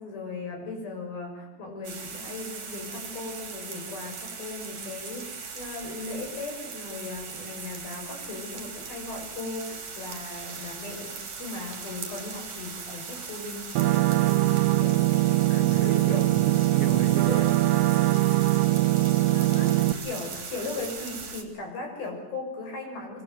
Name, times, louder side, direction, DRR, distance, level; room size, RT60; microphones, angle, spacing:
voice 1, 0.0-13.7 14.8-14.9 15.5-16.3 16.9-17.0 17.3-17.5 19.3-23.2, left 3 dB, 60° left, 3 dB, 8.1 m, -37 dB
sound 1, 1.8-21.4, right 5 dB, 40° right, 4.3 m, -39 dB
sound 2, 13.8-19.9, right 16 dB, 80° right, 3.1 m, -22 dB
voice 2, 14.2-14.8 15.7-17.5, right 6 dB, 60° right, 6 dB, 1.4 m, -34 dB
24.5 x 23.5 x 7.8 m, 1.0 s
omnidirectional pair, 5.0 m